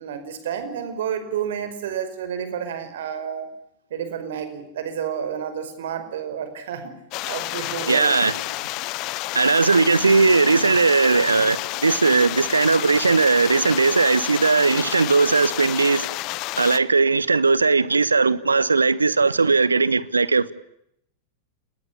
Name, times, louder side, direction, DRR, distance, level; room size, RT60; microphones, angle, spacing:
voice 1, 0.0-3.5 3.9-7.0 7.2-8.1, right 8 dB, 60° right, 5.1 m, -30 dB
sound 1, 7.1-16.8, left 19 dB, 40° left, 1.1 m, -30 dB
voice 2, 7.9-8.3 9.3-16.1 16.6-20.5, right 4 dB, 80° right, 1.1 m, -18 dB
29.5 x 20.5 x 8.6 m
figure-of-eight pair, 90°, 0 cm